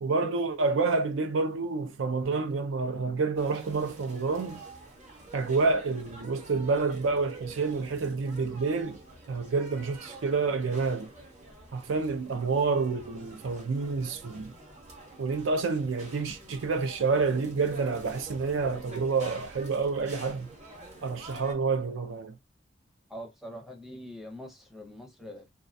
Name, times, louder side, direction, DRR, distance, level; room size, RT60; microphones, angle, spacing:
voice 1, 0.0-4.6 5.3-9.0 9.3-11.1 11.7-14.5 15.2-20.5 21.0-22.4, right 4 dB, 90° right, 0.4 m, -28 dB
sound 1, 3.3-21.5, right 2 dB, 40° right, 0.8 m, -48 dB
voice 2, 23.1-25.5, equal, ahead, 0.5 m, -43 dB
2.4 x 2.2 x 2.6 m
head